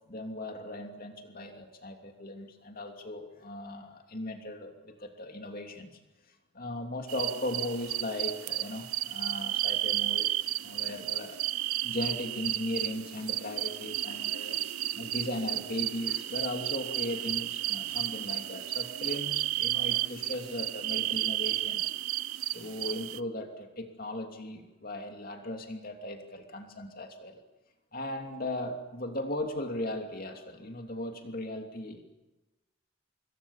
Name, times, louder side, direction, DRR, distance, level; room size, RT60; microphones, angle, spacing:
voice 1, 0.1-6.0 6.5-11.4 11.8-14.6 14.9-21.9 22.5-27.4 27.9-32.0, left 1 dB, 40° left, 4 dB, 2.9 m, -37 dB
sound 1, 7.1-23.2, right 14 dB, 85° right, 0.7 m, -32 dB
26.5 x 22.5 x 7.3 m, 1.1 s
head